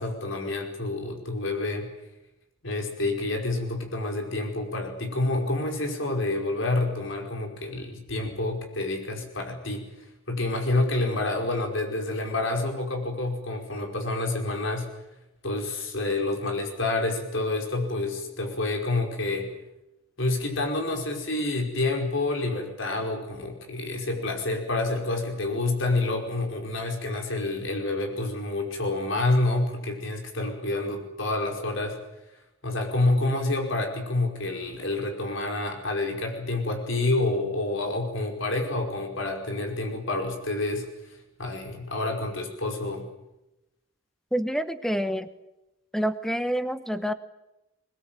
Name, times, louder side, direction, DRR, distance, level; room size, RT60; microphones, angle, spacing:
voice 1, 0.0-1.9 2.6-9.9 10.3-14.9 15.4-19.5 20.2-32.0 32.6-43.0, left 2 dB, 60° left, 3 dB, 5.1 m, -28 dB
voice 2, 44.3-45.3 45.9-47.1, equal, ahead, 12 dB, 1.2 m, -27 dB
22.5 x 21.5 x 9.2 m, 0.92 s
head